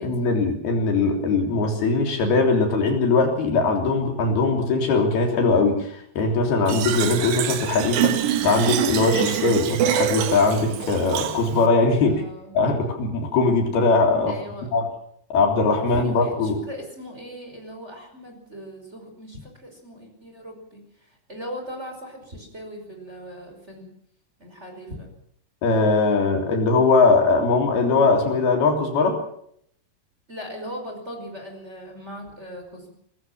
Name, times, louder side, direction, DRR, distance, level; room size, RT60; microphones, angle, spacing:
voice 1, 0.0-12.2 12.6-14.3 14.7-14.9 15.3-16.6 25.6-29.2, left 3 dB, 65° left, 3 dB, 5.2 m, -20 dB
Fill (with liquid), 6.7-11.7, right 11 dB, 80° right, 3.7 m, -25 dB
voice 2, 12.0-12.5 14.3-14.7 15.8-23.9 24.4-25.1 30.3-32.9, equal, 15° right, 3 dB, 5.3 m, -39 dB
22.5 x 20.0 x 7.3 m, 0.68 s
omnidirectional pair, 4.9 m